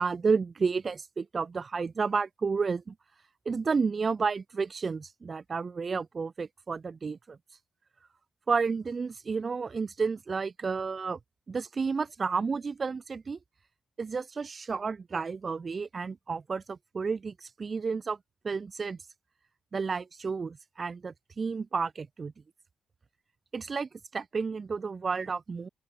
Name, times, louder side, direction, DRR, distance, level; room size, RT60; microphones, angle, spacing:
voice 1, 0.0-2.9 3.5-7.4 8.5-11.2 11.5-13.4 14.0-18.2 18.4-19.0 19.7-22.3 23.5-25.7, right 5 dB, 45° right, 0.8 m, -31 dB
open air
supercardioid pair, 55°, 0 cm